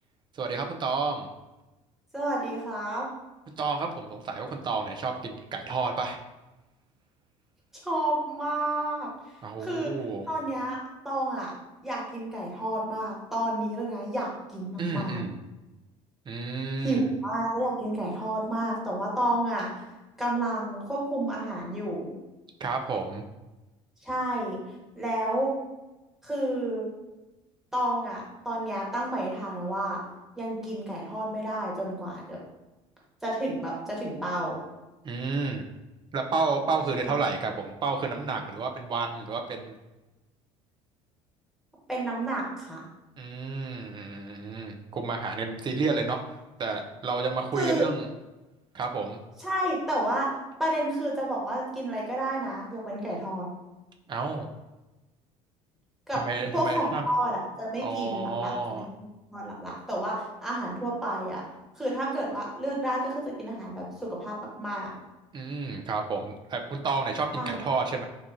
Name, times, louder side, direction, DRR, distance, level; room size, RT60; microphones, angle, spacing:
voice 1, 0.3-1.3 3.6-6.2 9.4-10.3 14.8-15.4 16.3-17.0 22.6-23.2 35.0-35.6 36.1-39.7 43.2-48.1 48.7-49.2 54.1-54.5 56.1-57.1 57.8-58.9 65.3-68.0, right 4 dB, 25° right, 4 dB, 0.5 m, -30 dB
voice 2, 2.1-3.1 7.8-9.1 9.6-9.9 10.3-10.8 11.0-11.5 11.8-15.2 16.8-19.8 20.2-22.1 24.0-24.6 24.9-25.5 26.2-26.9 27.7-30.0 30.3-32.4 33.2-34.6 37.0-37.1 41.9-42.8 47.5-47.9 49.4-50.3 50.6-53.5 56.1-56.2 56.5-58.8 59.3-61.4 61.8-64.9 67.3-67.6, right 1 dB, ahead, -5 dB, 1.2 m, -30 dB
4.1 x 2.4 x 2.5 m, 1.1 s
figure-of-eight pair, 60°, 17 cm